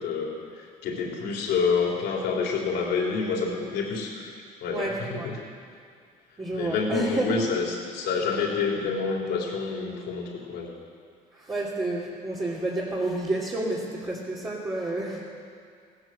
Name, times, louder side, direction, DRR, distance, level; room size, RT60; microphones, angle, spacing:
voice 1, 0.0-4.3 4.6-5.4 6.5-10.8, left 5 dB, 75° left, -1 dB, 3.7 m, -28 dB
voice 2, 4.7-5.3 6.4-7.5 11.3-15.2, right 2 dB, 25° right, -7 dB, 2.7 m, -30 dB
17.0 x 10.5 x 7.7 m, 2.2 s
cardioid pair, 110°, 17 cm